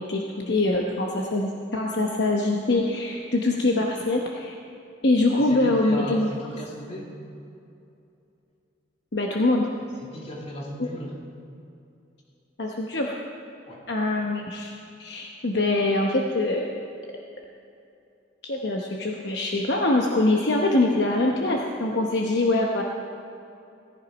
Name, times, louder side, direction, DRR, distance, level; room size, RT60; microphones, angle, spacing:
voice 1, 0.0-4.6 5.0-6.3 9.1-9.7 10.8-10.9 12.6-13.2 13.9-14.7 15.0-16.7 18.4-22.8, left 2 dB, 60° left, 0 dB, 1.0 m, -24 dB
voice 2, 5.3-7.1 10.0-11.2 13.7-13.8, equal, 35° left, -2 dB, 2.6 m, -37 dB
17.5 x 11.0 x 5.2 m, 2.6 s
head